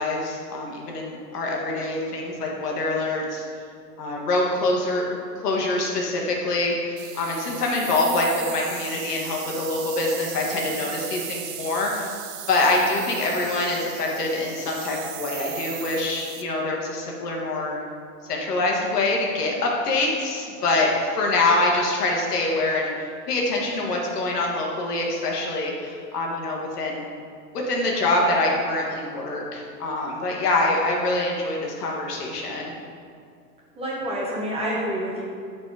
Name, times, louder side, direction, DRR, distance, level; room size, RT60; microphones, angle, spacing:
voice 1, 0.0-3.5 4.0-5.2 5.4-12.1 12.5-17.8 18.3-27.1 27.5-32.7, left 2 dB, 70° left, -1 dB, 1.5 m, -25 dB
sound 1, 7.0-16.4, right 10 dB, 70° right, 0.7 m, -37 dB
voice 2, 33.8-35.2, equal, 10° right, -6 dB, 1.3 m, -28 dB
5.7 x 4.2 x 4.8 m, 2.3 s
hypercardioid pair, 125°, 49 cm